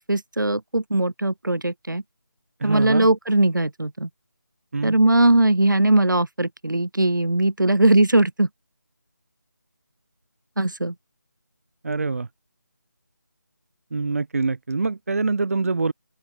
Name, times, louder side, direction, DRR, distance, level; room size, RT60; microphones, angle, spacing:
voice 1, 0.0-2.0 2.6-4.1 4.8-8.5 10.6-10.9, right 2 dB, 75° right, 3.8 m, -20 dB
voice 2, 2.6-3.1 4.7-4.9 11.8-12.3 13.9-15.9, right 3 dB, 45° right, 2.5 m, -24 dB
open air
figure-of-eight pair, 160°, 10 cm